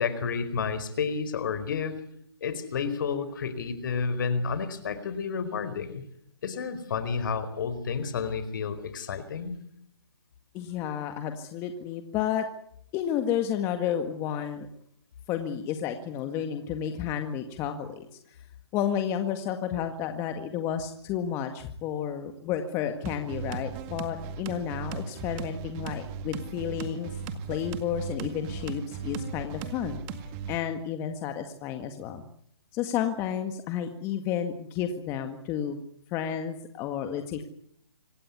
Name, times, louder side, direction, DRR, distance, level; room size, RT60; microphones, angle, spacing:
voice 1, 0.0-1.9 2.4-6.0 6.4-9.6, left 5 dB, 50° left, 13 dB, 4.6 m, -30 dB
voice 2, 10.5-12.5 12.9-14.7 15.3-18.4 18.7-27.2 27.5-32.2 32.7-35.8 36.1-37.4, left 9 dB, 20° left, 7 dB, 1.8 m, -31 dB
sound 1, 23.1-30.6, right 6 dB, 25° right, 2.0 m, -37 dB
26.0 x 17.0 x 9.8 m, 0.70 s
hypercardioid pair, 150°, 14 cm